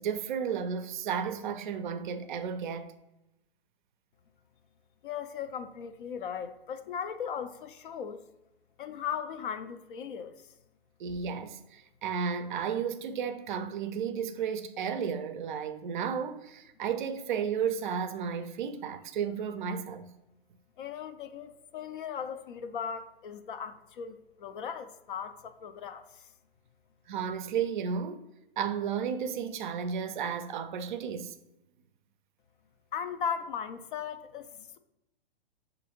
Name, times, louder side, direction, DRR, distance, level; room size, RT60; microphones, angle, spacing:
voice 1, 0.0-2.9 11.0-20.1 27.1-28.2 28.6-31.4, right 7 dB, 55° right, 0.4 m, -33 dB
voice 2, 5.0-8.2 8.8-10.5 20.8-26.3 32.9-34.8, left 7 dB, 60° left, 0.4 m, -38 dB
6.1 x 2.6 x 2.9 m
figure-of-eight pair, 115°, 30 cm